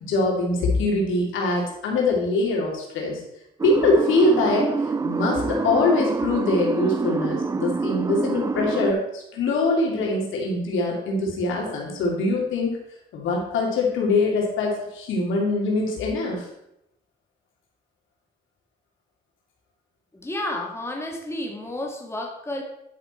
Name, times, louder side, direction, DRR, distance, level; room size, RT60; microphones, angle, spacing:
voice 1, 0.0-3.2 3.6-4.7 5.0-12.7 13.1-16.5, left 2 dB, 80° left, -1 dB, 2.8 m, -23 dB
sound 1, 3.6-8.9, right 4 dB, 15° right, 0.3 m, -26 dB
voice 2, 20.1-22.6, left 1 dB, 15° left, 1 dB, 1.8 m, -31 dB
10.5 x 5.6 x 4.4 m, 0.82 s
cardioid pair, 90°, 20 cm